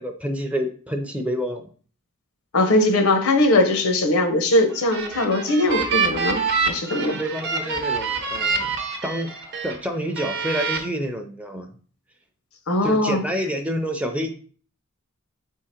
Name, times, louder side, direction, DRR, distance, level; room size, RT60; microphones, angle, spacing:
voice 1, 0.0-1.7 7.1-8.7 9.0-9.3 9.6-11.7 12.8-14.3, equal, 5° right, 5 dB, 0.5 m, -28 dB
voice 2, 2.5-7.2 12.7-13.2, left 1 dB, 85° left, 6 dB, 0.8 m, -20 dB
sound 1, 4.7-9.7 10.2-10.8, right 5 dB, 55° right, 0.8 m, -26 dB
3.7 x 2.9 x 4.3 m, 0.42 s
head